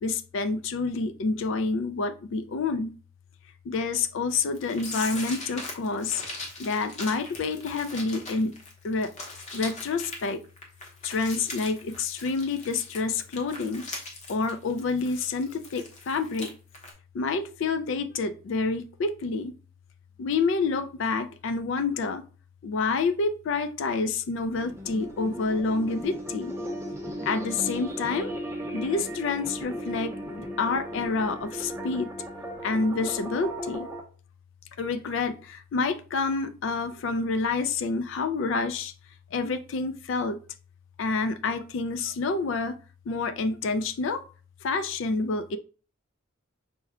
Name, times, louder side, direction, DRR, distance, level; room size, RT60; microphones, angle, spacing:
voice 1, 0.0-2.9 3.7-6.2 6.6-8.5 8.8-9.1 9.5-10.4 11.0-13.8 14.3-16.5 17.1-19.5 20.2-22.2 22.6-26.5 27.3-28.3 28.7-32.1 32.6-33.9 34.8-38.9 39.3-40.4 41.0-42.8 43.1-44.2 44.6-45.6, left 4 dB, 60° left, 0.3 m, -28 dB
sound 1, 4.5-16.5 16.7-16.9, left 2 dB, 35° left, 0.8 m, -40 dB
sound 2, 24.4-34.0, equal, 10° right, 0.5 m, -36 dB
5.5 x 2.2 x 3.5 m
head